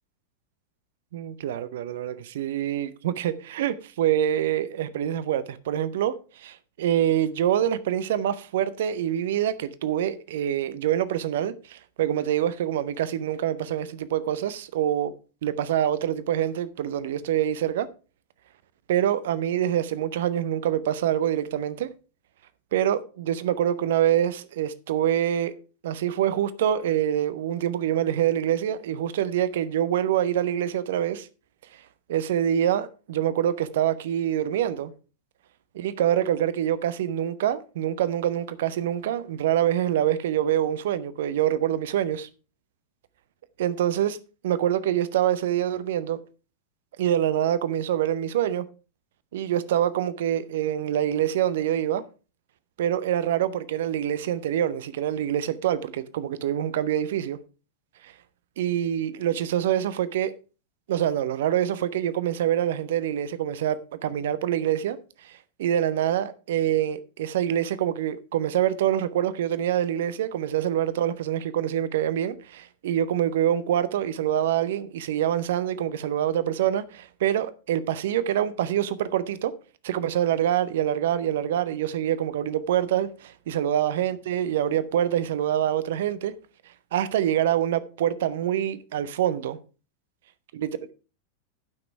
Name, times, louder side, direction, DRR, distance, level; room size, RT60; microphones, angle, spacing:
voice 1, 1.1-15.1 15.4-17.9 18.9-21.9 22.7-25.5 25.8-31.3 32.1-34.9 35.7-42.3 43.6-44.2 44.4-46.2 47.0-48.7 49.3-52.0 52.8-57.4 58.0-58.1 58.6-60.3 60.9-65.3 65.6-79.5 79.8-86.3 86.9-89.6, right 10 dB, 55° right, 0.7 m, -25 dB
11.5 x 6.0 x 4.6 m
figure-of-eight pair, 90°, 0 cm